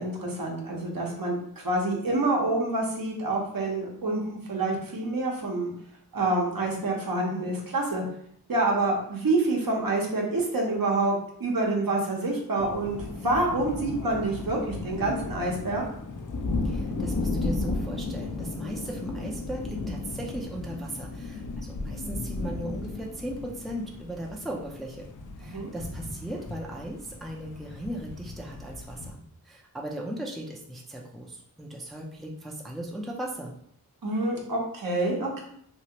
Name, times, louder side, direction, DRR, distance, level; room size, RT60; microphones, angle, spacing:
voice 1, 0.0-5.7 6.1-8.0 8.5-11.1 11.4-15.8 25.4-25.7 34.0-35.4, right 2 dB, 65° right, -1 dB, 0.9 m, -27 dB
sound 1, 12.6-29.1, left 3 dB, 55° left, 0.5 m, -35 dB
voice 2, 16.6-25.1 25.4-29.2 29.4-33.5, right 1 dB, ahead, -2 dB, 0.5 m, -37 dB
3.0 x 2.4 x 2.9 m, 0.66 s
wide cardioid pair, 50°, 37 cm